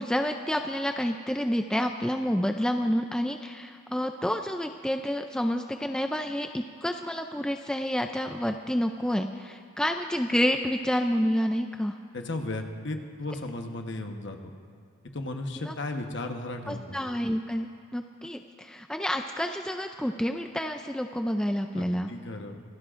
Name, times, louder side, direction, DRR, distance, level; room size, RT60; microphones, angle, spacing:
voice 1, 0.0-12.0 15.6-15.7 16.7-22.1, equal, 5° left, 5 dB, 0.3 m, -29 dB
voice 2, 12.1-14.5 15.0-17.0 21.7-22.6, left 2 dB, 55° left, 4 dB, 1.1 m, -35 dB
25.0 x 16.5 x 2.5 m, 2.2 s
head